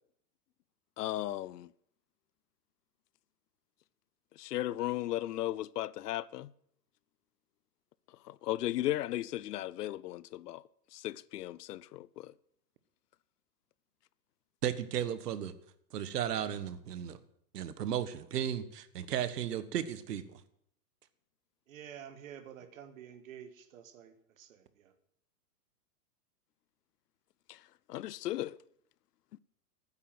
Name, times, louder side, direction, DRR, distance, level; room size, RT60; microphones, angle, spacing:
voice 1, 1.0-1.7 4.4-6.5 8.2-10.6 10.9-12.3 27.5-27.6 27.9-28.6, left 14 dB, 80° left, 0.7 m, -36 dB
voice 2, 14.6-15.5 15.9-17.2 17.5-20.4, right 9 dB, 80° right, 1.4 m, -35 dB
voice 3, 21.7-24.9, right 9 dB, 55° right, 1.7 m, -50 dB
12.0 x 9.9 x 7.7 m
supercardioid pair, 175°, 47 cm